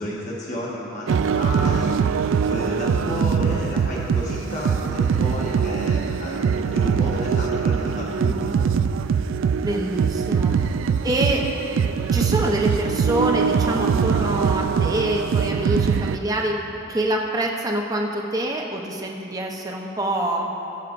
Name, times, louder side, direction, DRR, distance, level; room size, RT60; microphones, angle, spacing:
voice 1, 0.0-8.7, left 1 dB, 35° left, -5 dB, 1.2 m, -32 dB
sound 1, 1.1-16.2, right 6 dB, 75° right, 0.3 m, -22 dB
voice 2, 9.6-10.6 11.0-11.4 12.1-16.6 16.9-20.5, right 1 dB, 20° right, 0 dB, 0.8 m, -25 dB
20.0 x 7.5 x 2.6 m, 3.0 s
head